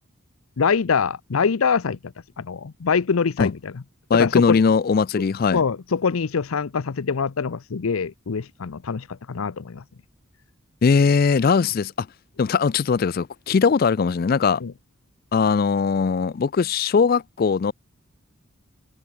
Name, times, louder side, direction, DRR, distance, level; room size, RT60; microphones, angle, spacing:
voice 1, 0.6-3.8 4.1-4.6 5.1-5.2 5.5-9.8 14.6-14.7, left 5 dB, 85° left, 0.6 m, -24 dB
voice 2, 4.1-5.6 10.8-12.1 12.4-14.6 15.3-17.7, left 5 dB, 45° left, 0.4 m, -20 dB
head